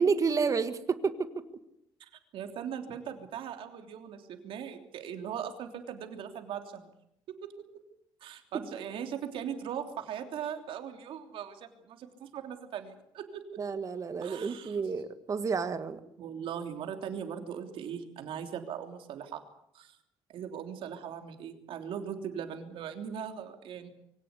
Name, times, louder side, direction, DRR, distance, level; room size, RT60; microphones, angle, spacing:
voice 1, 0.0-1.4 13.6-16.0, right 5 dB, 35° right, 11 dB, 1.6 m, -30 dB
voice 2, 2.0-6.9 7.3-7.7 8.2-13.6 14.2-14.8 16.2-19.4 19.7-20.0 20.3-23.9, right 8 dB, 75° right, 5 dB, 3.2 m, -39 dB
23.5 x 17.5 x 8.3 m, 0.76 s
cardioid pair, 120°, 9 cm